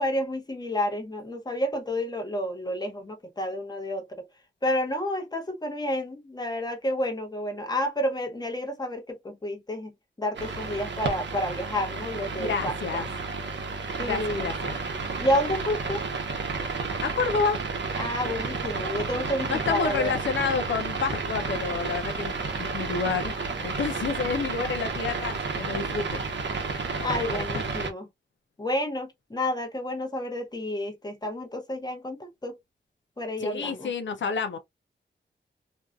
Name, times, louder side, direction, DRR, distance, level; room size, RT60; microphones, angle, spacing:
voice 1, 0.0-4.3 4.6-9.9 10.2-13.1 14.0-14.5 15.2-16.0 18.0-20.1 27.0-28.1 28.6-32.6 33.2-33.9, left 1 dB, 20° left, 0.9 m, -30 dB
sound 1, 10.3-27.9, right 4 dB, 70° right, 0.7 m, -31 dB
voice 2, 12.4-13.1 14.1-14.7 17.0-17.6 19.5-23.3 23.6-26.2 27.0-27.5 33.4-34.6, left 5 dB, 80° left, 0.5 m, -29 dB
2.7 x 2.3 x 2.3 m
wide cardioid pair, 70°, 19 cm